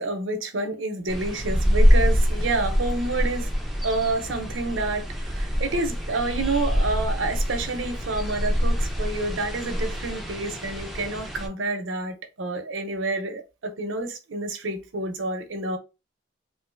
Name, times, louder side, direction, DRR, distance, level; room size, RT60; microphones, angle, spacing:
voice 1, 0.0-3.5 3.8-15.8, right 2 dB, 80° right, 0.7 m, -29 dB
sound 1, 1.1-11.5, equal, ahead, 0.5 m, -25 dB
3.1 x 2.5 x 2.5 m
head